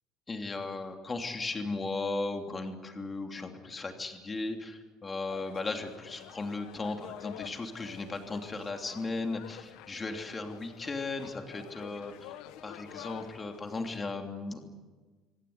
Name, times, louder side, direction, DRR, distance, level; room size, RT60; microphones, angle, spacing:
voice 1, 0.3-12.4 12.6-14.6, left 3 dB, 20° left, 4 dB, 3.1 m, -36 dB
sound 1, 5.3-14.0, left 13 dB, 75° left, 1.5 m, -49 dB
26.5 x 17.0 x 9.6 m, 1.3 s
cardioid pair, 125°, 0 cm